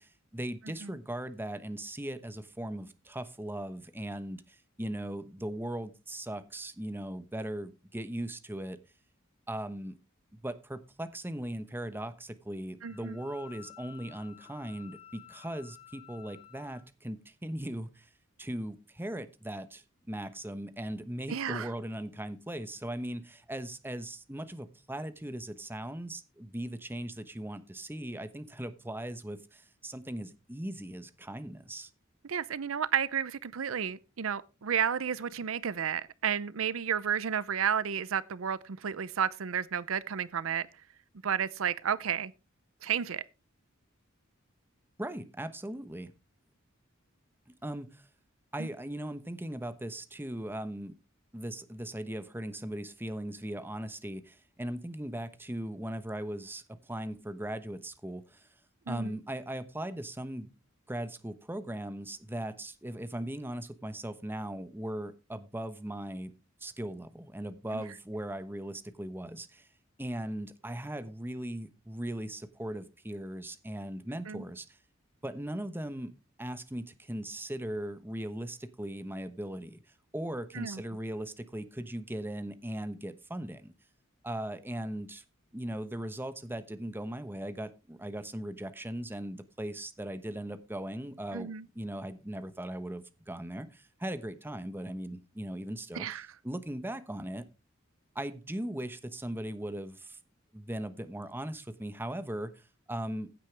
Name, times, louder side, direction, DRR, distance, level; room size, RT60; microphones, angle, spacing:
voice 1, 0.0-8.8 9.5-9.9 10.3-18.1 18.4-31.9 45.0-46.1 47.6-48.1 48.5-50.9 51.3-58.5 58.9-60.5 60.9-66.3 66.6-69.7 70.0-74.7 75.2-76.1 76.4-79.8 80.1-83.7 84.2-85.2 85.5-97.4 98.1-100.2 100.5-103.3, right 1 dB, 10° right, 1.1 m, -39 dB
Wind instrument woodwind instrument, 12.8-16.8, left 12 dB, 30° left, 5.2 m, -53 dB
voice 2, 12.8-13.2 21.3-21.7 32.2-40.7 41.2-42.3 42.8-43.2 48.6-48.7 58.9-59.2 67.7-67.8 74.3-74.4 80.5-80.8 91.3-91.6 95.9-96.3, right 8 dB, 70° right, 0.6 m, -32 dB
15.5 x 8.5 x 3.3 m
head